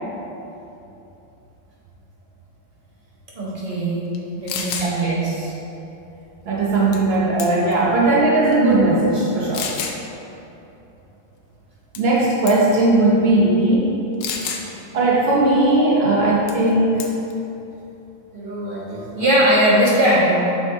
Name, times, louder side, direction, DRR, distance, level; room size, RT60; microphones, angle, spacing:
voice 1, 3.3-4.0 4.4-5.5 14.6-14.8 18.3-20.3, right 1 dB, 30° right, -7 dB, 1.4 m, -20 dB
sound 1, 4.1-4.2 4.5-4.9 6.9-7.1 7.4-7.8 8.5-8.6 9.5-10.0 11.9-12.2 12.5-12.7 14.2-14.7 16.5-16.7 17.0-17.3, left 6 dB, 75° left, 1.2 m, -28 dB
voice 2, 6.5-9.7 12.0-13.9 14.9-17.0, right 2 dB, 70° right, -5 dB, 0.6 m, -17 dB
6.1 x 5.3 x 3.9 m, 2.9 s
omnidirectional pair, 2.2 m